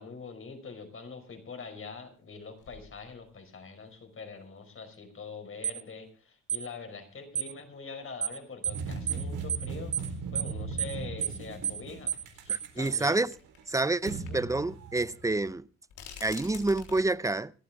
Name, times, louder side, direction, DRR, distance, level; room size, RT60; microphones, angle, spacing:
voice 1, 0.0-13.2 14.1-14.4, left 4 dB, 45° left, 5.1 m, -44 dB
sound 1, 1.3-1.4 2.2-2.3 2.6-3.5 4.2-4.3 6.0-6.1 7.4-7.5 7.7-7.8 8.8-8.9 9.3-9.4 10.8-10.9 12.3-12.4 13.3-13.7 14.1-14.3 14.6-14.7 15.9-17.1, left 7 dB, 85° left, 3.8 m, -47 dB
sound 2, 5.6-5.8 6.5-6.7 7.4-7.5 8.2-8.4 8.6-8.8 9.1-9.2 9.5-9.7 9.9-10.1 10.4-10.5 10.8-10.9 11.2-11.4 11.6-11.8 12.1-12.2 12.5-12.7 12.9-13.1, right 10 dB, 55° right, 0.8 m, -30 dB
sound 3, 8.7-15.5, right 4 dB, 80° right, 4.1 m, -38 dB
voice 2, 12.5-13.3 13.7-15.6 16.2-17.5, right 2 dB, 10° right, 0.6 m, -28 dB
26.5 x 9.3 x 3.6 m
cardioid pair, 90°, 30 cm